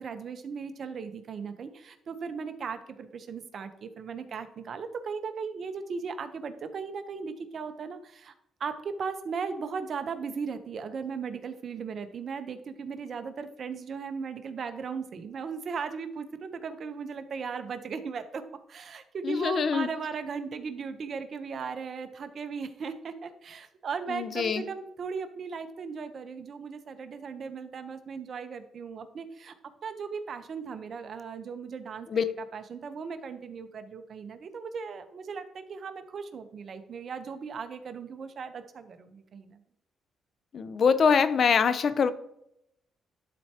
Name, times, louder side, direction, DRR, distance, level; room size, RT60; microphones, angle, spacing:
voice 1, 0.0-8.3 8.6-29.5 29.8-32.1 32.5-39.6, right 5 dB, 55° right, 9 dB, 0.9 m, -37 dB
voice 2, 19.2-19.9 24.1-24.6 32.1-32.3 40.5-42.1, left 6 dB, 50° left, 13 dB, 0.6 m, -24 dB
11.5 x 4.5 x 2.9 m, 0.77 s
cardioid pair, 90°, 0 cm